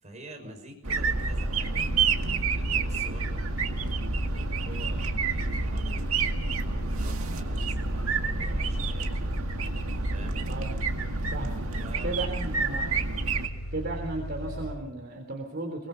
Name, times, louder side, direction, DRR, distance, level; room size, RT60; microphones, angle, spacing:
voice 1, 0.0-1.9 2.3-3.4 4.3-6.2 6.6-9.4 10.1-10.4 11.8-12.5, right 1 dB, 35° right, 3 dB, 6.1 m, -47 dB
sound 1, 0.8-13.5, right 4 dB, 85° right, 2.0 m, -29 dB
sound 2, 1.1-14.7, right 1 dB, 50° left, 6.4 m, -36 dB
voice 2, 11.3-11.7 12.0-12.9 13.7-15.9, right 2 dB, 50° right, 2 dB, 3.5 m, -35 dB
24.0 x 21.5 x 5.8 m, 0.80 s
head